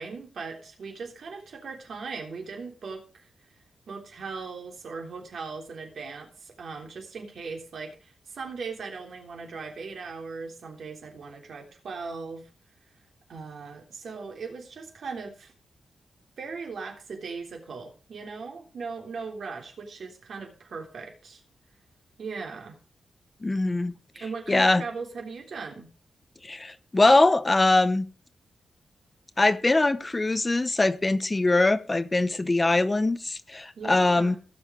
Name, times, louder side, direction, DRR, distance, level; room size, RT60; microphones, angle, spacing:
voice 1, 0.0-3.3 3.9-12.5 13.3-15.5 16.4-21.4 22.2-22.8 24.2-25.9 33.8-34.4, right 4 dB, 60° right, 3.5 m, -38 dB
voice 2, 23.4-23.9 24.5-24.8 26.4-28.1 29.4-34.4, left 2 dB, 20° left, 0.7 m, -22 dB
17.0 x 6.5 x 5.1 m
wide cardioid pair, 150°, 0 cm